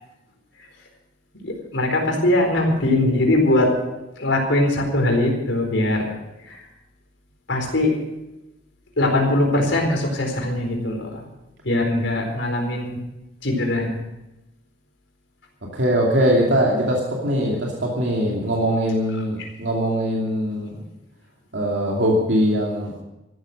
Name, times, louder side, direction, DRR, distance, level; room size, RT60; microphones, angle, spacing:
voice 1, 1.4-3.7 4.2-6.1 6.5-6.6 7.5-7.9 9.0-11.1 11.6-13.0 13.4-13.9, left 1 dB, 75° left, 1 dB, 4.2 m, -21 dB
voice 2, 15.7-20.7 21.5-22.9, equal, 70° right, -2 dB, 2.6 m, -21 dB
14.0 x 13.0 x 6.5 m, 0.97 s
head